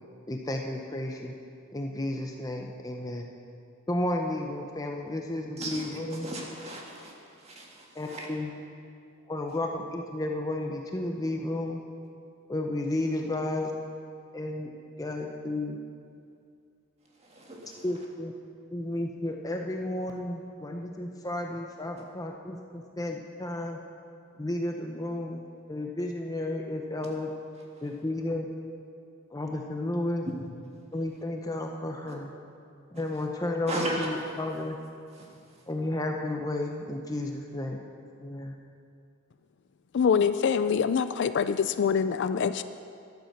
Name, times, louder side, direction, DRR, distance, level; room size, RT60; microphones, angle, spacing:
voice 1, 0.3-1.3 1.7-3.3 3.9-6.3 7.9-8.5 9.3-11.8 12.5-13.7 14.3-14.7 15.0-15.8 17.8-18.3 18.7-23.8 24.4-27.3 27.8-28.5 29.3-30.3 30.9-32.3 32.9-34.8 35.7-37.8 38.2-38.6, left 1 dB, 15° left, 2 dB, 0.7 m, -32 dB
voice 2, 5.6-8.3 9.5-9.6 17.2-17.8 30.3-30.4 32.1-32.2 32.9-33.0 33.7-34.1 35.1-35.4, right 1 dB, 30° right, -1 dB, 1.9 m, -36 dB
voice 3, 39.9-42.6, left 6 dB, 55° left, 12 dB, 0.4 m, -25 dB
12.0 x 8.8 x 6.6 m, 2.4 s
head